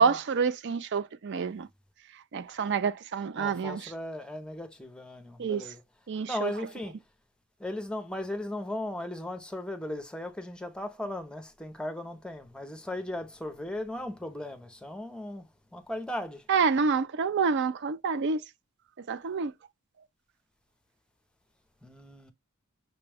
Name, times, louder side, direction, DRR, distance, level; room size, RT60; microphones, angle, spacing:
voice 1, 0.0-1.7 2.1-3.9 5.4-5.7 6.1-6.5 16.5-18.4 19.0-19.5, right 5 dB, 55° right, 0.4 m, -28 dB
voice 2, 3.4-5.8 6.3-7.0 7.6-16.5 21.8-22.3, left 1 dB, 5° left, 0.6 m, -37 dB
5.9 x 2.2 x 3.4 m
head